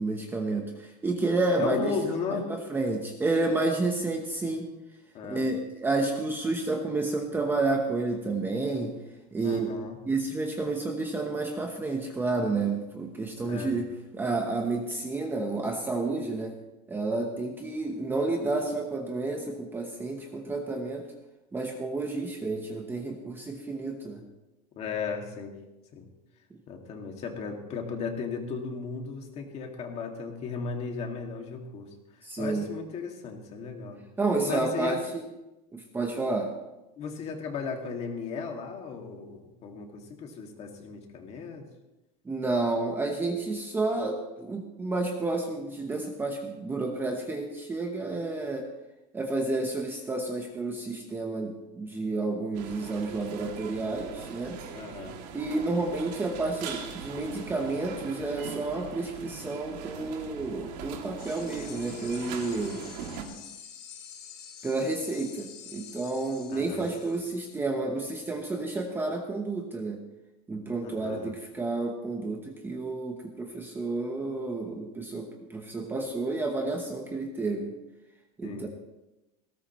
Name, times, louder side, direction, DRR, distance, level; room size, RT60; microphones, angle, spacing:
voice 1, 0.0-1.9 2.3-4.7 5.3-9.0 9.3-9.7 10.0-16.6 16.9-21.1 21.5-24.2 26.5-26.6 32.2-32.7 34.2-35.0 35.7-36.5 42.3-48.7 49.1-54.6 55.3-62.9 64.6-70.0 70.5-77.8 78.4-78.7, right 3 dB, 10° right, 2 dB, 1.0 m, -30 dB
voice 2, 1.6-2.5 5.1-5.5 9.4-10.0 13.4-13.8 24.8-25.5 25.9-26.1 26.7-31.9 32.2-34.0 34.5-35.0 37.0-41.7 54.7-55.2 66.5-66.9 70.8-71.3 78.4-78.7, left 5 dB, 30° left, 3 dB, 2.2 m, -35 dB
sound 1, 52.5-63.2, right 7 dB, 85° right, 2.5 m, -41 dB
sound 2, 61.2-67.6, left 8 dB, 80° left, 5.7 m, -47 dB
19.0 x 17.0 x 3.1 m, 0.98 s
cardioid pair, 170°, 20 cm